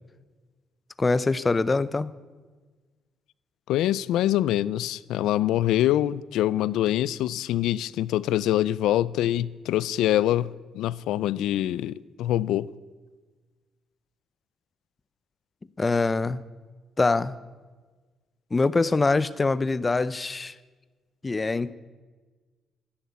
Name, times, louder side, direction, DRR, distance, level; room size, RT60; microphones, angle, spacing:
voice 1, 1.0-2.1 15.8-16.4 17.0-17.3 18.5-20.5 21.2-21.7, left 3 dB, 25° left, 0.7 m, -24 dB
voice 2, 3.7-10.5 10.7-12.7, left 13 dB, 90° left, 0.4 m, -24 dB
13.0 x 11.5 x 9.6 m
cardioid pair, 90°, 0 cm